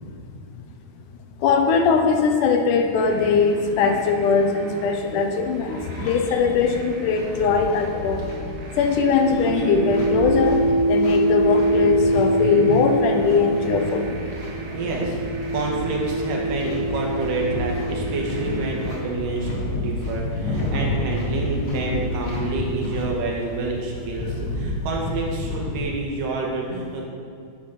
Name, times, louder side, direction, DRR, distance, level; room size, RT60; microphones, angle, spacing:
voice 1, 1.4-8.2 8.8-10.6 10.9-14.2, left 5 dB, 80° left, 5 dB, 2.2 m, -20 dB
sound 1, 2.9-19.0, right 2 dB, 70° right, 2.5 m, -38 dB
sound 2, 5.9-25.8, left 2 dB, 30° left, 1.7 m, -31 dB
sound 3, 9.1-19.4 20.3-24.1, right 2 dB, 25° right, 1.1 m, -26 dB
voice 2, 14.7-27.1, right 3 dB, 90° right, -1 dB, 2.9 m, -28 dB
9.0 x 6.3 x 5.8 m, 2.4 s
omnidirectional pair, 3.7 m